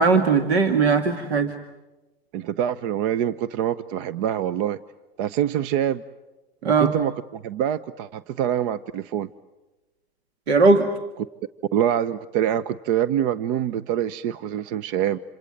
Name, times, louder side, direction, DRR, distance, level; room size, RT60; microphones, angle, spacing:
voice 1, 0.0-1.5 6.6-6.9 10.5-10.9, right 4 dB, 90° right, 7 dB, 2.2 m, -18 dB
voice 2, 2.3-4.8 5.2-6.0 6.6-9.3 11.7-15.2, right 10 dB, 55° right, 19 dB, 0.9 m, -25 dB
28.0 x 26.5 x 7.8 m, 1.1 s
hypercardioid pair, 115°, 31 cm